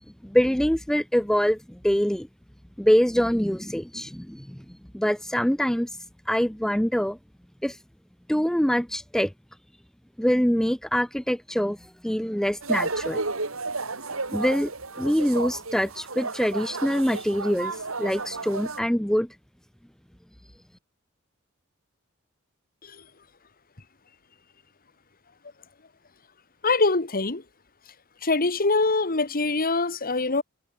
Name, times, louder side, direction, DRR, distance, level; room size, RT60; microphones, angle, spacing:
voice 1, 0.2-2.3 2.8-4.6 4.9-5.9 6.3-7.2 7.6-7.8 8.3-9.3 10.2-11.8 12.0-13.2 14.3-14.7 15.0-19.3, equal, 5° left, 0.7 m, -24 dB
sound 1, 12.6-18.8, right 3 dB, 80° right, 4.5 m, -32 dB
voice 2, 26.6-27.4 28.2-30.4, left 3 dB, 45° left, 1.9 m, -24 dB
head